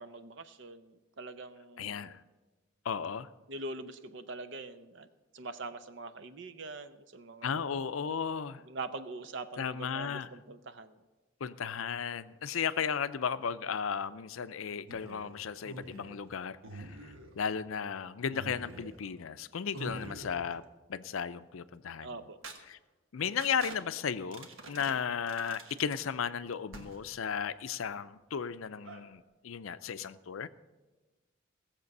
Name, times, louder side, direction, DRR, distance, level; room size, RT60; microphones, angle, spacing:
voice 1, 0.0-2.1 3.5-5.1 5.3-7.6 8.7-11.0 22.0-22.4, right 3 dB, 60° right, 0.7 m, -43 dB
voice 2, 1.8-2.2 2.8-3.3 7.4-8.6 9.6-10.3 11.4-20.6 20.9-22.1 22.7-22.8 23.1-30.5, left 7 dB, 80° left, 0.5 m, -35 dB
sound 1, 14.9-16.3 16.6-17.5 18.3-19.1 19.7-20.6 22.4-22.6 23.4-23.8 24.3-24.9 25.3-26.0 26.7-27.2 28.8-29.1, right 2 dB, 75° right, 1.3 m, -46 dB
18.0 x 7.4 x 5.4 m
head